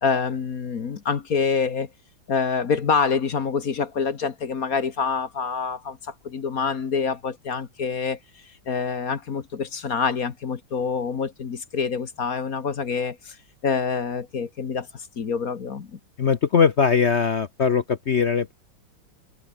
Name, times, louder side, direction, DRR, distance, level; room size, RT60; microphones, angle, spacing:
voice 1, 0.0-1.9 2.3-13.4 13.6-16.0, left 5 dB, 45° left, 1.7 m, -26 dB
voice 2, 16.2-18.5, left 6 dB, 65° left, 0.6 m, -20 dB
open air
omnidirectional pair, 2.4 m